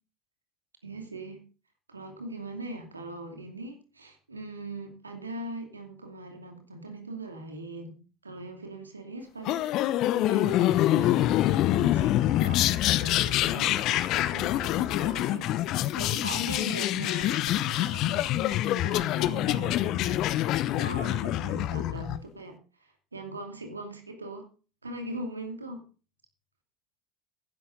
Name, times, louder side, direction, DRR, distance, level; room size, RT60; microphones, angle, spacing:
voice 1, 0.8-1.4 1.9-8.0 8.2-10.0 10.3-11.3 11.7-14.0 14.3-15.5 15.9-20.5 20.8-24.5 24.8-25.8, right 1 dB, 85° right, 5 dB, 2.6 m, -40 dB
sound 1, 9.4-22.2, left 14 dB, 50° left, 0.8 m, -26 dB
14.5 x 11.0 x 3.9 m, 0.35 s
figure-of-eight pair, 70°, 0 cm